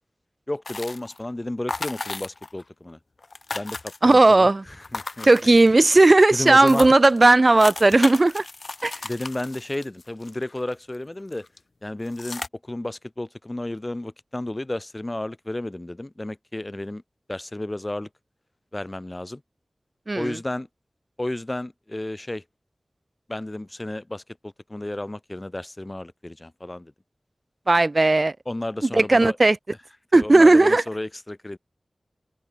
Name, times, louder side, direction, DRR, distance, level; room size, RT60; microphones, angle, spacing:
voice 1, 0.5-3.0 3.5-5.3 6.3-6.9 9.0-11.5 11.8-17.0 17.3-18.1 18.7-19.4 20.1-20.7 21.2-22.4 23.3-26.9 28.5-29.4 30.1-31.6, left 1 dB, 25° left, 1.5 m, -32 dB
sound 1, 0.7-1.3 1.7-2.6 2.9-3.0 3.2-4.3 4.8-5.9 6.4-6.5 6.7-11.0 11.3-11.6 12.1-12.5, left 3 dB, 65° left, 2.3 m, -35 dB
voice 2, 4.0-4.6 5.2-8.4 8.8-8.9 20.1-20.4 27.7-28.3 28.9-29.6 30.1-30.8, right 2 dB, 45° right, 0.4 m, -16 dB
wide cardioid pair, 65°, 0 cm